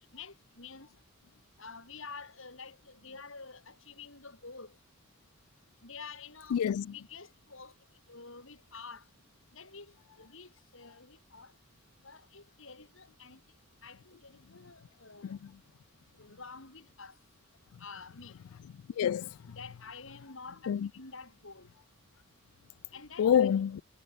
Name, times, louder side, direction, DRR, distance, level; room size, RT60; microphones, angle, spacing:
voice 1, 0.1-0.9 1.6-4.7 5.8-6.6 6.9-7.7 8.1-9.0 9.5-11.5 12.0-13.4 13.8-15.4 16.2-17.1 17.8-18.4 19.5-21.7 22.9-23.5, left 4 dB, 60° left, 3.9 m, -48 dB
voice 2, 6.5-6.9 15.2-15.5 19.0-19.4 20.7-20.9 23.2-23.8, left 8 dB, 85° left, 0.3 m, -27 dB
head